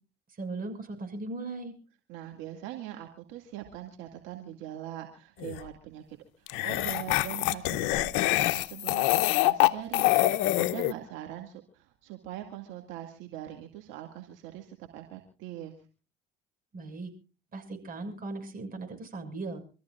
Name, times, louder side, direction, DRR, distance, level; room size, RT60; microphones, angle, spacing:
voice 1, 0.3-1.7 16.7-17.1 17.5-19.6, right 3 dB, 45° right, 6 dB, 6.5 m, -38 dB
voice 2, 2.1-15.7, right 12 dB, 80° right, 3 dB, 2.3 m, -42 dB
sound 1, 5.4-5.6 6.5-10.9, left 17 dB, 75° left, 0.8 m, -25 dB
26.5 x 14.5 x 2.5 m, 0.37 s
supercardioid pair, 70°, 20 cm